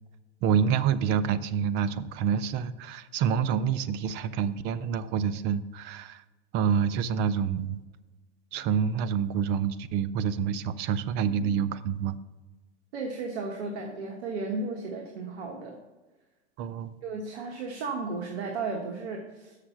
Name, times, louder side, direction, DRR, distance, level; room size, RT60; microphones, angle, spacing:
voice 1, 0.4-6.2 6.5-7.8 8.5-12.2 16.6-17.0, right 7 dB, 30° right, 15 dB, 0.4 m, -27 dB
voice 2, 12.9-15.8 17.0-19.6, right 3 dB, 70° right, 1 dB, 1.4 m, -34 dB
6.9 x 6.6 x 5.6 m, 1.2 s
hypercardioid pair, 125°, 34 cm